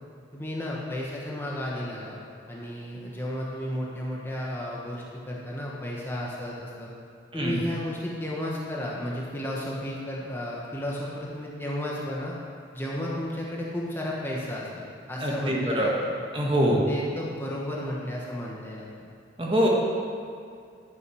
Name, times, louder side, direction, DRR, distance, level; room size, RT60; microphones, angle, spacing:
voice 1, 0.3-2.2 2.5-6.9 7.3-12.3 12.7-16.2 16.6-19.1, left 1 dB, 10° left, -4 dB, 1.1 m, -33 dB
voice 2, 15.2-16.0 16.3-16.8 19.4-19.7, equal, 30° right, -3 dB, 1.4 m, -24 dB
11.0 x 6.5 x 6.2 m, 2.3 s
head